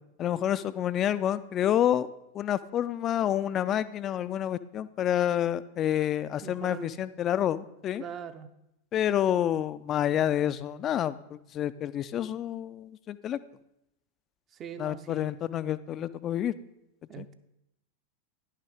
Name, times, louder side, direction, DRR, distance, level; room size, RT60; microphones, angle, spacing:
voice 1, 0.2-2.1 2.3-8.0 8.9-13.4 14.8-16.5 17.2-17.3, left 11 dB, 30° left, 15 dB, 0.4 m, -28 dB
voice 2, 6.4-6.9 8.0-8.5 14.5-15.4 17.1-17.3, right 8 dB, 30° right, 9 dB, 0.6 m, -42 dB
10.5 x 5.8 x 4.8 m, 0.84 s
figure-of-eight pair, 90°, 0 cm